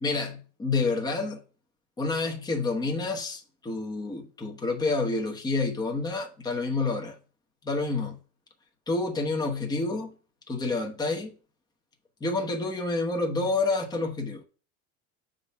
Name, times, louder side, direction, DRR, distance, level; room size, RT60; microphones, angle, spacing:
voice 1, 0.0-1.4 2.0-7.2 7.6-8.2 8.9-10.1 10.5-11.4 12.2-14.4, left 3 dB, 10° left, 0.9 m, -28 dB
6.7 x 3.9 x 5.5 m
cardioid pair, 160°, 35 cm